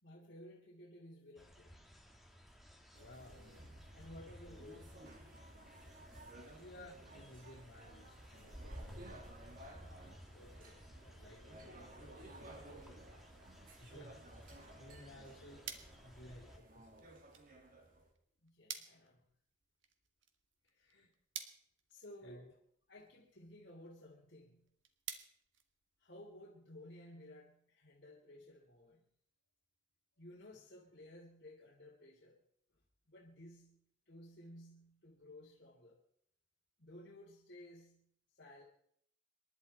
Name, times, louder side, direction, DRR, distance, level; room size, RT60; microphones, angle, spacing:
voice 1, 0.0-1.9 3.9-5.1 10.3-13.3 18.4-19.3 20.7-20.9 21.9-22.5 22.9-24.7 26.0-29.1 30.2-32.4 32.7-32.8 33.1-36.0 36.8-38.6, left 1 dB, 60° left, -5 dB, 3.3 m, -57 dB
sound 1, 1.4-16.6, equal, ahead, 1.9 m, -57 dB
voice 2, 2.9-3.6 6.6-9.2 11.1-11.4 13.8-14.2 14.7-17.1 20.6-21.1 22.2-22.5, left 1 dB, 80° left, -4 dB, 3.0 m, -57 dB
sound 2, 2.9-18.1, right 1 dB, 45° right, 2.7 m, -56 dB
sound 3, 15.6-26.4, right 8 dB, 90° right, 1.7 m, -54 dB
27.5 x 11.5 x 4.3 m, 0.68 s
head